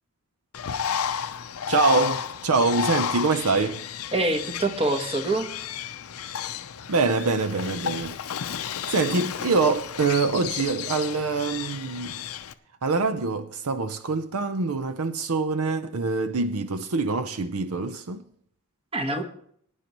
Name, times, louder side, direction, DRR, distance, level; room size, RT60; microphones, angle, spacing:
Bird, 0.5-12.5, left 8 dB, 70° left, 0.6 m, -32 dB
voice 1, 1.7-3.8 6.9-8.2 8.9-12.3 12.8-18.2, right 4 dB, 70° right, 0.6 m, -25 dB
voice 2, 4.1-5.5 18.9-19.2, right 2 dB, 25° right, 1.2 m, -25 dB
20.0 x 9.7 x 3.1 m
head